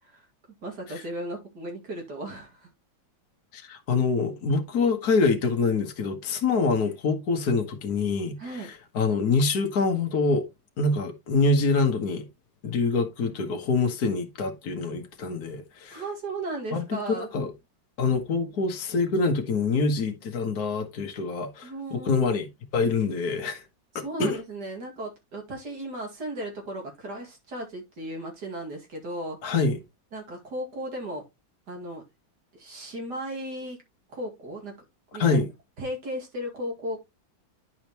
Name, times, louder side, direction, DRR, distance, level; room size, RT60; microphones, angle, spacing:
voice 1, 0.6-2.7 8.4-8.7 15.9-17.3 21.6-22.4 23.9-29.4 30.1-31.2 31.7-32.0 32.5-33.8 34.1-34.7 35.1-35.5 35.8-37.0, right 1 dB, 60° right, 2.8 m, -35 dB
voice 2, 3.5-10.4 10.8-12.2 12.6-16.0 16.7-17.5 18.0-22.5 22.7-23.6 23.9-24.4 29.4-29.8 35.2-35.5, left 4 dB, 55° left, 1.7 m, -25 dB
10.5 x 5.0 x 3.0 m
omnidirectional pair, 2.1 m